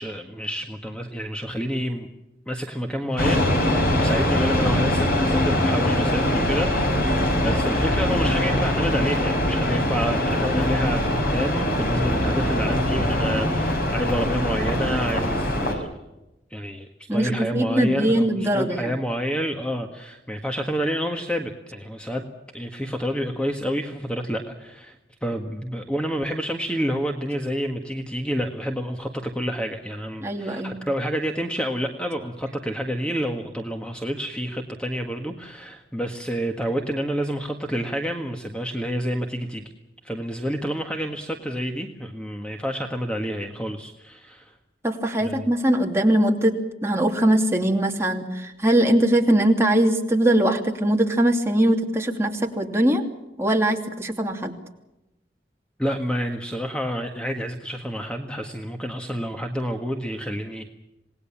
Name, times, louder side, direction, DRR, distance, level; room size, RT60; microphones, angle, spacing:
voice 1, 0.0-2.1 2.5-16.0 16.5-22.2 22.5-25.0 25.2-39.7 40.0-44.6 45.2-45.5 55.8-60.6, equal, 5° left, 3 dB, 1.6 m, -29 dB
sound 1, 3.2-15.7, left 1 dB, 55° left, 6.0 m, -22 dB
voice 2, 17.1-18.9 30.2-30.8 44.8-46.6 46.8-53.0 53.4-54.5, right 1 dB, 15° right, 1 dB, 2.9 m, -21 dB
27.5 x 19.5 x 7.3 m, 0.96 s
head